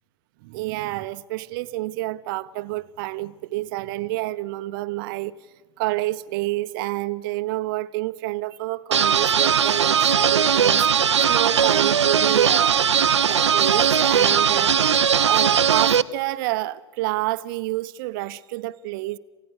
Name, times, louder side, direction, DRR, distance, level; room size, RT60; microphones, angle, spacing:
voice 1, 0.4-5.4 5.8-14.7 15.2-19.2, right 18 dB, 50° right, 0.7 m, -28 dB
sound 1, 8.9-16.0, right 7 dB, 80° right, 0.6 m, -19 dB
28.0 x 16.0 x 6.5 m
hypercardioid pair, 100°, 15 cm